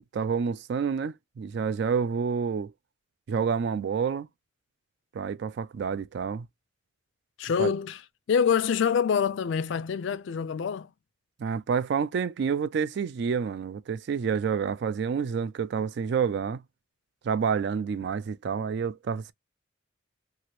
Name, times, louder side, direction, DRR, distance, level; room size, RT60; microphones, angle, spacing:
voice 1, 0.1-2.7 3.3-4.3 5.1-6.5 7.6-7.7 11.4-16.6 17.2-19.3, right 6 dB, 55° right, 0.3 m, -28 dB
voice 2, 7.4-8.0 8.3-10.9, left 7 dB, 65° left, 0.3 m, -26 dB
2.8 x 2.5 x 3.0 m
head